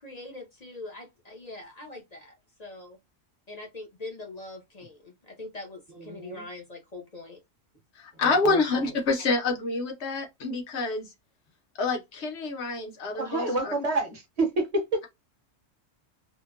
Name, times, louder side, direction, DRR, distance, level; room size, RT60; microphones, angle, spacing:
voice 1, 0.0-3.0 3.5-7.4, left 2 dB, 40° left, 0.6 m, -42 dB
voice 2, 6.0-6.4 8.4-8.6 13.2-14.8, right 2 dB, 35° right, 0.8 m, -28 dB
voice 3, 8.0-11.1 11.8-13.7, left 3 dB, 60° left, 1.0 m, -27 dB
2.9 x 2.1 x 2.3 m
omnidirectional pair, 1.3 m